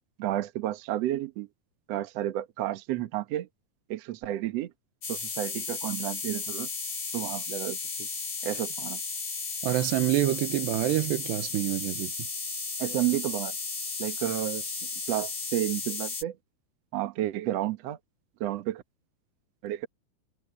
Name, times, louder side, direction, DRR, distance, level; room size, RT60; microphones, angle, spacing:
voice 1, 0.2-1.5 1.9-3.5 3.9-4.7 5.1-6.7 7.1-8.1 8.4-9.0 12.8-13.5 14.0-14.8 15.1-16.4 16.9-18.0 18.4-18.8 19.6-19.9, right 13 dB, 75° right, 1.5 m, -31 dB
sound 1, 5.0-16.2, left 4 dB, 30° left, 1.8 m, -34 dB
voice 2, 9.6-12.1, right 15 dB, 90° right, 3.3 m, -27 dB
omnidirectional pair, 4.7 m